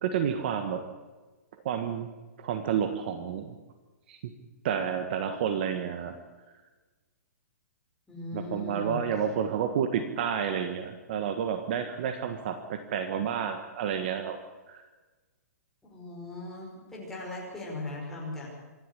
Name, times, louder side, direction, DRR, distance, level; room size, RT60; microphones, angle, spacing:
voice 1, 0.0-0.8 1.6-2.1 2.4-3.6 4.1-4.3 4.6-6.2 8.3-14.4 14.7-14.8, right 8 dB, 35° right, 8 dB, 1.5 m, -30 dB
voice 2, 8.1-9.0 15.9-18.5, left 2 dB, 5° left, -4 dB, 5.3 m, -38 dB
26.5 x 11.5 x 10.0 m, 1.3 s
hypercardioid pair, 175°, 9 cm